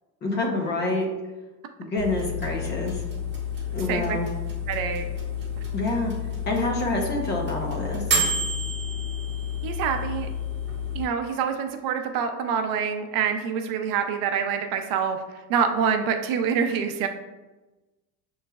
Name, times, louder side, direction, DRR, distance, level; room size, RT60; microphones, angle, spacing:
voice 1, 0.2-1.1 1.8-3.0 3.7-4.3 5.7-6.1 6.5-8.0, left 2 dB, 25° left, 1 dB, 0.6 m, -27 dB
sound 1, 2.0-11.0, left 3 dB, 30° right, 1.1 m, -30 dB
voice 2, 4.7-5.1 9.6-10.3 10.9-15.2 15.5-17.1, right 7 dB, 60° right, 6 dB, 0.5 m, -26 dB
6.9 x 3.1 x 2.3 m, 1.1 s
cardioid pair, 170°, 39 cm